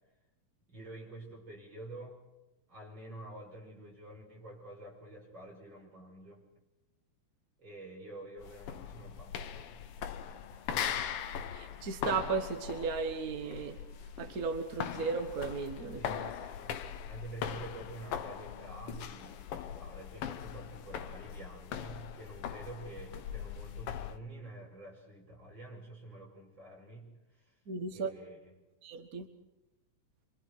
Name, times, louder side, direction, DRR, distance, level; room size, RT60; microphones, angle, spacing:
voice 1, 0.7-2.2 2.7-6.5 7.6-9.8 10.2-11.0 15.9-16.8 17.1-27.5 27.9-28.5, right 2 dB, 35° right, -1 dB, 6.5 m, -48 dB
sound 1, 8.4-24.2, left 8 dB, 80° left, 1.2 m, -40 dB
voice 2, 11.5-13.8 14.2-16.3 27.7-28.1 28.8-29.3, right 4 dB, 60° right, 6 dB, 0.9 m, -35 dB
27.0 x 25.5 x 4.7 m, 1.0 s
omnidirectional pair, 3.8 m